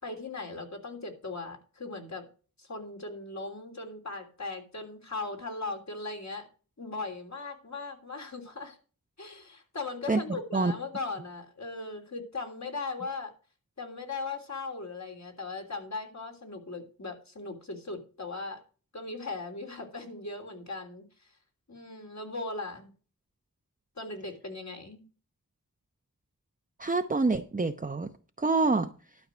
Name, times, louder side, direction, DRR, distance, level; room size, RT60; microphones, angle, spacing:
voice 1, 0.0-2.3 2.6-6.5 6.8-8.8 9.2-13.3 13.8-18.6 18.9-21.1 21.7-22.9 24.0-25.0, left 3 dB, 50° left, 3.3 m, -38 dB
voice 2, 10.1-10.7 26.8-28.1 28.4-28.9, right 3 dB, 20° right, 0.8 m, -27 dB
12.0 x 4.7 x 8.0 m
cardioid pair, 55°, 36 cm